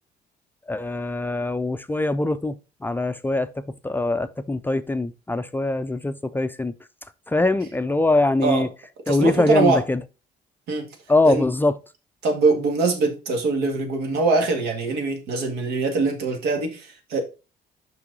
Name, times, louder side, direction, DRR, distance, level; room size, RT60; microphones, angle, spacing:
voice 1, 0.7-2.6 2.8-3.5 3.8-6.7 7.3-8.7 9.1-10.0 11.1-11.8, left 2 dB, 10° left, 0.4 m, -22 dB
voice 2, 9.1-9.8 10.7-10.9 11.2-11.5 12.2-17.2, right 3 dB, 80° right, 1.8 m, -23 dB
5.9 x 5.5 x 3.9 m
cardioid pair, 110°, 17 cm